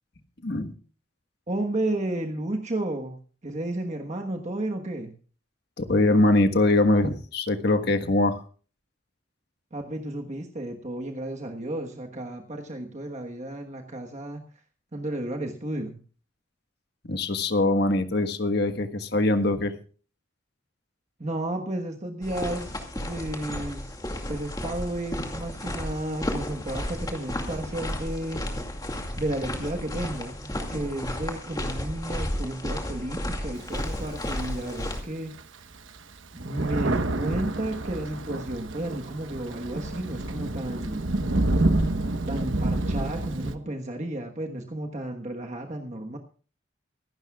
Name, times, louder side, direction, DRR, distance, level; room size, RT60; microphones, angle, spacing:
voice 1, 0.4-0.7 5.8-8.4 17.1-19.7, left 2 dB, 55° left, 8 dB, 1.5 m, -22 dB
voice 2, 1.5-5.1 9.7-14.4 14.9-16.0 21.2-23.9 24.3-28.4 29.2-35.4 36.3-41.1 42.3-46.2, right 1 dB, 40° right, 3 dB, 1.3 m, -32 dB
sound 1, 22.2-35.0, left 1 dB, 20° left, 2.3 m, -33 dB
Thunder, 33.6-34.8 35.4-35.5 35.7-43.5, right 2 dB, 85° right, 1.2 m, -28 dB
24.5 x 12.0 x 2.4 m, 0.39 s
head